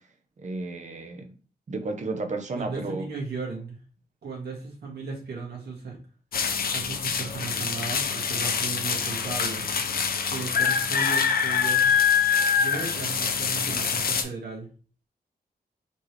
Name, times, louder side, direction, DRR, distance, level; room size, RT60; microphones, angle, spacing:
voice 1, 0.4-1.3 1.7-3.1, right 3 dB, 45° right, 5 dB, 0.8 m, -32 dB
voice 2, 2.5-3.8 4.2-6.0 6.7-9.7 10.3-11.9 12.6-14.7, right 4 dB, 90° right, -2 dB, 1.8 m, -36 dB
sound 1, 6.3-14.2, left 6 dB, 65° left, 0.6 m, -25 dB
4.4 x 3.2 x 3.0 m, 0.37 s
wide cardioid pair, 125°, 16 cm